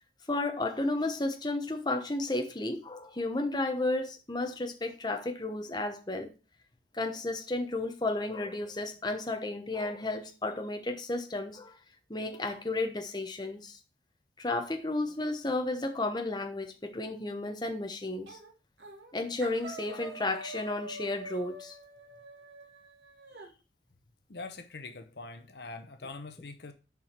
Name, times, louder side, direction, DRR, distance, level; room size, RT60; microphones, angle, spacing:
voice 1, 0.3-6.3 6.9-11.8 12.1-13.8 14.4-18.4 19.1-21.7, left 2 dB, 25° left, 1.0 m, -33 dB
sound 1, 18.3-18.5 18.8-19.1 19.4-23.5, right 2 dB, 80° right, 2.1 m, -45 dB
voice 2, 24.3-26.7, left 3 dB, 65° left, 0.9 m, -43 dB
7.0 x 5.0 x 5.9 m
head